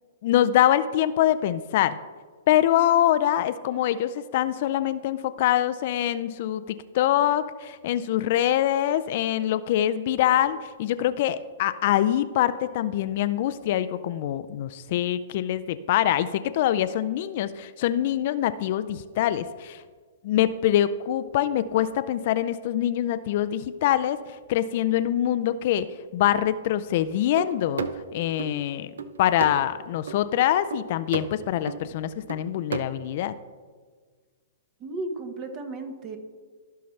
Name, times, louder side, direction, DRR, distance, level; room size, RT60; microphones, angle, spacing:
voice 1, 0.2-2.0 2.5-19.8 20.2-24.2 24.5-25.9 26.1-27.9 28.1-28.9 29.2-33.3, left 12 dB, 50° left, 13 dB, 0.4 m, -24 dB
sound 1, 27.4-28.5 29.0-29.7 30.1-30.3 30.7-31.4 31.7-31.8 32.3-32.8, right 5 dB, 85° right, 0.6 m, -33 dB
voice 2, 34.8-36.2, right 2 dB, 30° right, 6 dB, 1.3 m, -34 dB
15.5 x 5.7 x 3.2 m, 1.5 s
hypercardioid pair, 135°, 0 cm